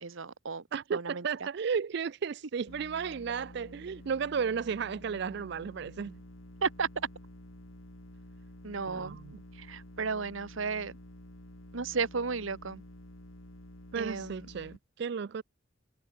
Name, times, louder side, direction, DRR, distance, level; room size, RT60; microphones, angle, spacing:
voice 1, 0.0-0.6 0.9-1.2 6.6-6.9 8.6-9.2 9.5-10.9 11.7-12.8 14.0-14.5, right 5 dB, 75° right, 1.0 m, -33 dB
voice 2, 0.7-6.1 8.9-9.4 13.9-15.4, right 6 dB, 55° right, 0.4 m, -34 dB
sound 1, 2.7-14.8, equal, 90° left, 6.4 m, -50 dB
head